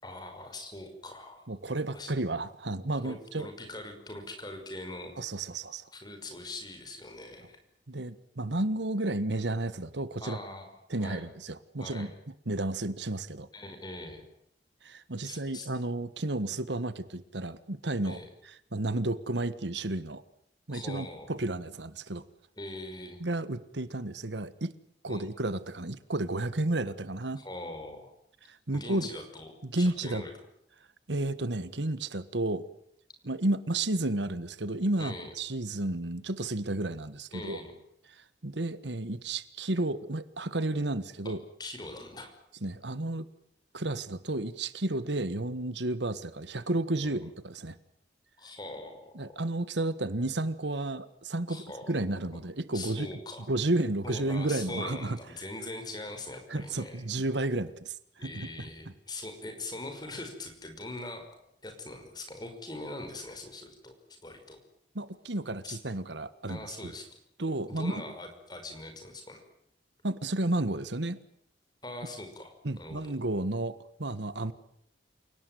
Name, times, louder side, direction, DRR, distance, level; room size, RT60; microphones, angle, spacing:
voice 1, 0.0-1.5 1.9-2.1 3.0-5.1 5.9-7.6 10.2-10.7 11.0-11.3 11.8-12.1 13.5-14.2 15.2-15.7 18.0-18.3 20.7-21.3 22.6-23.2 25.1-25.3 27.4-28.1 28.7-30.3 35.0-35.3 37.3-37.7 41.2-41.3 41.6-42.3 47.0-47.2 48.4-49.4 51.5-53.5 54.0-57.0 58.2-61.2 61.6-64.6 65.6-65.8 66.5-67.2 67.7-69.4 71.8-73.1, left 2 dB, 25° left, 5 dB, 5.7 m, -42 dB
voice 2, 1.5-3.5 5.2-5.9 7.9-10.4 10.9-12.1 12.5-13.5 14.8-18.2 18.7-20.2 20.7-22.2 23.2-24.7 25.0-27.4 28.5-29.1 29.6-30.2 31.1-32.6 33.2-37.6 38.4-41.4 42.6-43.3 43.7-47.8 49.1-53.1 53.5-55.2 56.5-58.0 58.2-58.5 64.9-66.9 67.4-68.0 70.0-71.2 72.6-74.5, right 2 dB, 80° right, 14 dB, 1.5 m, -32 dB
29.0 x 18.0 x 9.3 m, 0.71 s
head